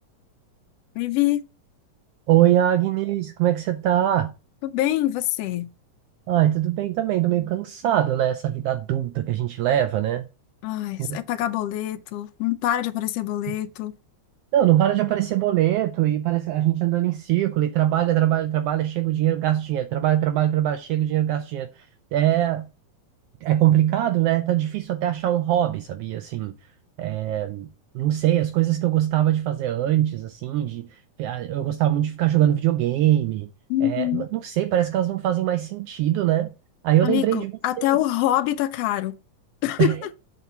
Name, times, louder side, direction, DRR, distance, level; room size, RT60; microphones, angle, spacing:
voice 1, 0.9-1.4 4.6-5.7 10.6-13.9 33.7-34.3 37.0-39.1 39.6-40.1, left 13 dB, 75° left, 1.5 m, -25 dB
voice 2, 2.3-4.3 6.3-10.2 11.0-11.2 14.5-21.9 22.1-22.7 23.4-26.5 27.0-27.7 27.9-30.9 31.2-33.5 33.8-36.5 36.8-37.5 37.8-37.9 39.8-40.0, right 12 dB, 85° right, 1.3 m, -22 dB
8.2 x 4.1 x 5.7 m
omnidirectional pair, 3.3 m